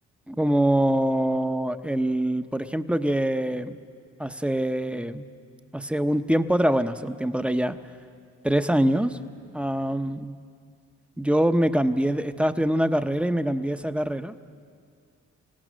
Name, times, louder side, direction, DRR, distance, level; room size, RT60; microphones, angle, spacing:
voice 1, 0.3-3.8 4.2-5.2 5.7-7.8 8.4-9.2 9.5-10.4 11.2-14.3, right 1 dB, 5° right, 10 dB, 0.8 m, -24 dB
26.5 x 16.5 x 6.3 m, 2.2 s
cardioid pair, 90°, 30 cm